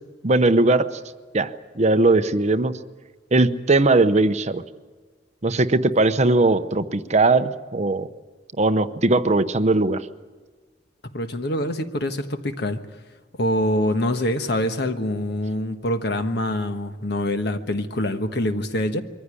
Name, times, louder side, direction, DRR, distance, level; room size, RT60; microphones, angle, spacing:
voice 1, 0.2-0.9 1.3-2.8 3.3-4.6 5.4-8.1 8.6-10.1, right 2 dB, 40° right, 11 dB, 0.8 m, -19 dB
voice 2, 11.1-12.8 13.4-19.0, left 1 dB, 65° left, 8 dB, 1.4 m, -25 dB
23.5 x 15.0 x 9.8 m, 1.3 s
head